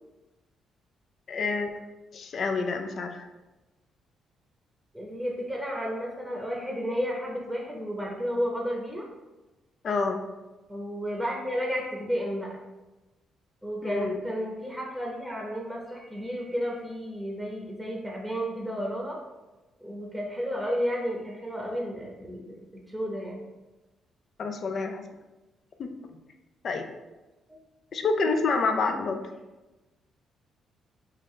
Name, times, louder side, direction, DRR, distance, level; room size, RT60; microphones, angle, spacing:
voice 1, 1.3-1.7 2.1-3.3 9.8-10.2 13.8-14.2 24.4-25.1 25.8-25.9 26.6-26.9 27.9-29.2, left 4 dB, 55° left, 5 dB, 0.5 m, -28 dB
voice 2, 4.9-9.1 10.7-12.6 13.6-19.2 19.8-23.5 27.5-27.6, equal, ahead, -2 dB, 0.8 m, -32 dB
5.5 x 2.5 x 3.2 m, 1.1 s
cardioid pair, 90°, 0 cm